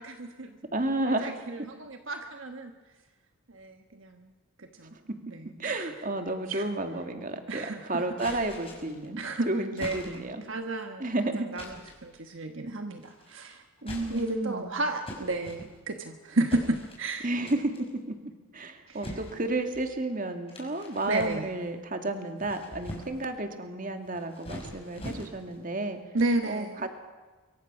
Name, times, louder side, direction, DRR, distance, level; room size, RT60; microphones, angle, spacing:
voice 1, 0.0-0.6 1.1-2.7 3.5-4.3 4.6-5.0 5.3-5.9 6.5-6.6 7.5-8.5 9.2-9.5 9.7-10.2 10.5-11.1 11.3-11.7 12.0-13.6 14.1-17.3 18.9-19.2 21.1-21.5 26.1-26.9, right 2 dB, 60° right, 5 dB, 1.4 m, -32 dB
voice 2, 0.7-1.4 4.9-5.0 5.6-9.2 9.5-10.4 11.0-11.5 13.8-14.7 17.2-17.7 18.1-18.2 18.5-26.0 26.5-26.9, right 2 dB, 40° right, 6 dB, 2.2 m, -31 dB
sound 1, 8.2-9.1 9.8-10.4 11.6-12.1 13.0-13.4 13.8-14.5 15.1-16.0 16.5-17.1 17.5-17.9 19.0-19.9 20.5-21.7 22.2-23.3 24.0-25.6, equal, 25° left, 4.8 m, -43 dB
25.0 x 24.0 x 6.2 m, 1.4 s
head